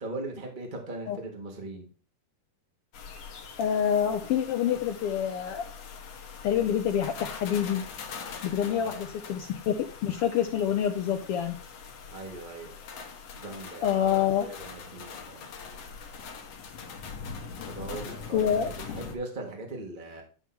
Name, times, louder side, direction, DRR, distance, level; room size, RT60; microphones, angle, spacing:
voice 1, 0.0-1.9 8.6-9.0 12.1-12.8 13.3-15.5 17.6-20.2, right 2 dB, 25° right, 1 dB, 1.0 m, -40 dB
sound 1, 2.9-19.2, left 5 dB, 60° left, 2.2 m, -43 dB
voice 2, 3.6-5.6 6.4-7.8 8.4-11.6 13.8-14.5 18.3-18.7, left 9 dB, 85° left, 6 dB, 1.3 m, -27 dB
11.0 x 3.7 x 6.1 m, 0.38 s
omnidirectional pair, 3.5 m